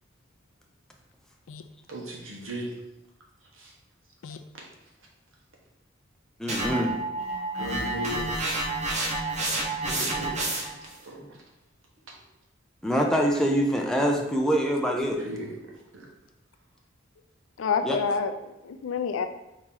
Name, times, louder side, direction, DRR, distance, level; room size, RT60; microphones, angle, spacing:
voice 1, 1.9-2.7 3.5-3.7 7.5-8.4 9.8-11.4 12.1-12.2 15.2-15.5 15.9-16.1, right 1 dB, 80° right, -1 dB, 1.1 m, -37 dB
voice 2, 6.4-6.9 8.9-9.0 12.8-15.2 17.8-18.0, equal, 5° left, 0 dB, 0.4 m, -25 dB
sound 1, 6.5-10.9, right 2 dB, 35° right, 0.8 m, -29 dB
voice 3, 17.6-18.3 18.6-19.3, left 5 dB, 85° left, 8 dB, 0.4 m, -28 dB
4.2 x 3.0 x 3.7 m, 0.96 s
head